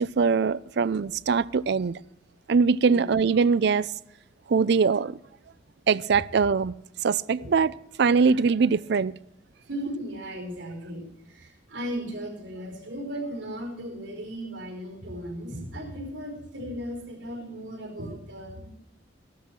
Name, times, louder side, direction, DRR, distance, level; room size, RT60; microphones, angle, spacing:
voice 1, 0.0-2.0 2.5-3.9 4.5-5.2 5.9-6.7 7.0-7.7 8.0-9.1, right 5 dB, 65° right, 0.4 m, -22 dB
voice 2, 9.6-18.7, equal, 85° right, 4.8 m, -36 dB
14.5 x 12.5 x 4.6 m
head